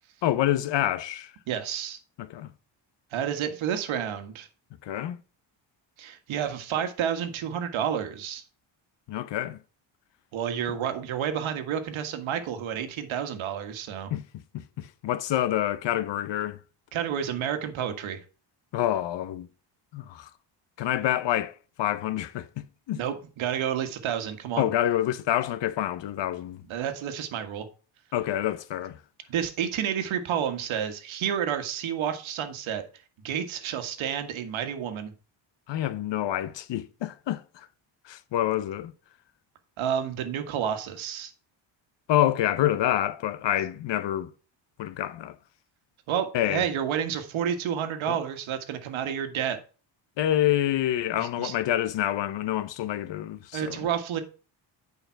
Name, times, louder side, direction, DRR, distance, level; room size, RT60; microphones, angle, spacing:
voice 1, 0.2-1.3 2.2-2.5 4.8-5.2 9.1-9.6 14.1-14.2 14.5-16.6 18.7-19.5 19.9-20.3 20.8-23.0 24.6-26.6 28.1-29.0 35.7-37.7 38.1-38.9 42.1-44.3 44.8-45.3 46.3-46.6 48.1-48.2 50.2-53.9, left 12 dB, 65° left, 0.9 m, -27 dB
voice 2, 1.5-2.0 3.1-4.5 6.0-8.4 10.3-14.1 16.9-18.2 22.9-24.7 26.7-27.7 29.3-32.8 33.2-35.1 39.8-41.3 46.1-49.6 51.2-51.5 53.5-54.2, right 9 dB, 80° right, 1.7 m, -30 dB
9.1 x 5.3 x 4.6 m
cardioid pair, 130°, 47 cm